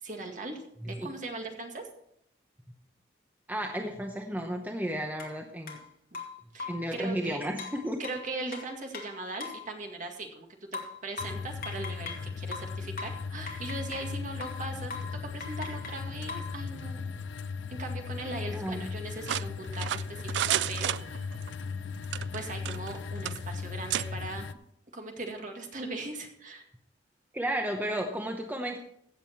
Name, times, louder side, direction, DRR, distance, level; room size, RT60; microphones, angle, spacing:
voice 1, 0.0-1.8 6.1-6.2 6.5-7.4 8.0-14.9 15.2-17.1 17.7-20.9 22.3-24.5 24.9-26.7, right 2 dB, 45° right, 3 dB, 2.0 m, -39 dB
voice 2, 3.5-5.8 6.7-8.0 18.5-18.8 27.3-28.8, right 1 dB, 10° right, 3 dB, 0.8 m, -33 dB
sound 1, 5.2-5.3 5.7-5.8 6.1-6.9 7.6-9.7 10.7-12.3 12.5-14.1 14.4-14.6 14.9-15.1 15.4-16.5, left 4 dB, 55° left, 2.4 m, -40 dB
sound 2, 11.2-24.5, left 5 dB, 85° left, 0.5 m, -37 dB
sound 3, 19.3-21.5 22.0-23.0 23.2-23.4 23.9-24.1, right 11 dB, 70° right, 0.3 m, -31 dB
15.5 x 7.4 x 4.5 m, 0.71 s
head